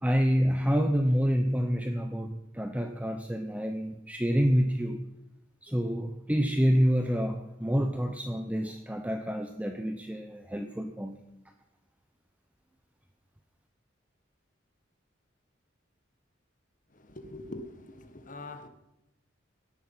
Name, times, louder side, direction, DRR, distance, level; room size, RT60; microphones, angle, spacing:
voice 1, 0.0-5.0 5.6-11.2, equal, 10° right, 6 dB, 0.8 m, -28 dB
voice 2, 17.1-18.7, left 2 dB, 45° left, 8 dB, 1.6 m, -43 dB
18.0 x 11.0 x 5.7 m, 0.93 s
head